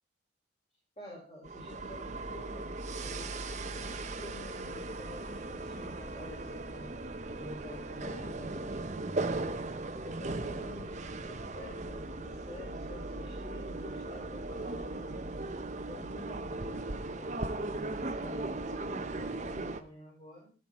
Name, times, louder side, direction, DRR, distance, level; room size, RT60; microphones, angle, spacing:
voice 1, 1.0-6.9 7.4-9.2 10.0-15.3 15.8-20.5, left 1 dB, 30° left, -4 dB, 5.3 m, -49 dB
sound 1, 1.4-19.8, right 2 dB, 35° right, 0.9 m, -38 dB
16.0 x 10.5 x 4.3 m, 0.38 s
head